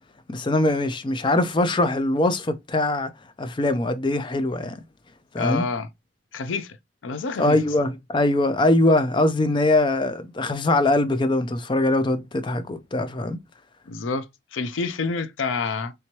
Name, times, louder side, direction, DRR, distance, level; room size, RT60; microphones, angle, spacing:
voice 1, 0.3-3.1 3.4-4.8 5.3-5.7 7.4-13.4, left 2 dB, 25° left, 0.4 m, -22 dB
voice 2, 5.4-5.9 6.3-6.8 7.0-7.6 13.9-15.9, left 4 dB, 80° left, 0.5 m, -28 dB
3.4 x 3.0 x 2.8 m
head